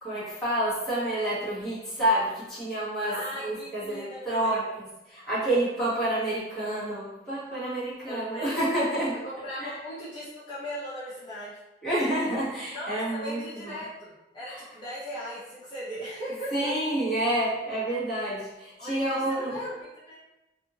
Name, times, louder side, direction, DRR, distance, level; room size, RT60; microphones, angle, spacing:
voice 1, 0.0-3.1 3.4-9.2 9.6-9.7 11.8-13.8 14.5-14.6 16.5-19.6, right 1 dB, 5° left, -11 dB, 1.1 m, -29 dB
voice 2, 3.1-4.6 8.1-8.6 9.2-11.6 12.7-16.7 18.8-20.2, equal, 25° left, -12 dB, 0.7 m, -38 dB
2.6 x 2.5 x 2.8 m, 0.97 s
head